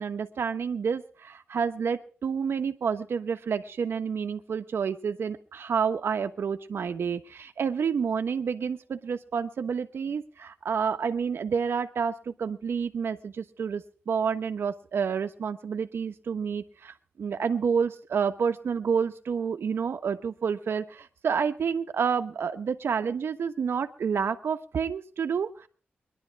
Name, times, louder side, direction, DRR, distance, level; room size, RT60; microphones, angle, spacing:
voice 1, 0.0-25.7, right 6 dB, 85° right, 8 dB, 1.2 m, -29 dB
22.0 x 11.5 x 4.7 m, 0.40 s
wide cardioid pair, 160°, 4 cm